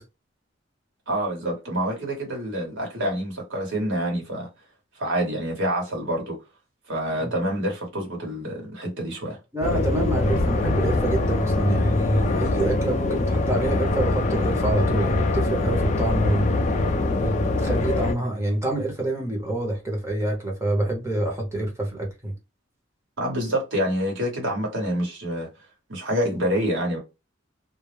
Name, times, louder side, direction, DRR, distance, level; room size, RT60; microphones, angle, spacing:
voice 1, 1.1-4.5 5.0-6.4 6.9-9.4 23.2-25.5 25.9-27.0, equal, 75° right, 1.1 m, -27 dB
voice 2, 9.5-16.5 17.0-22.3, right 1 dB, 15° right, 0.8 m, -26 dB
sound 1, 9.6-18.1, left 2 dB, 35° left, 0.3 m, -23 dB
2.3 x 2.0 x 3.1 m
head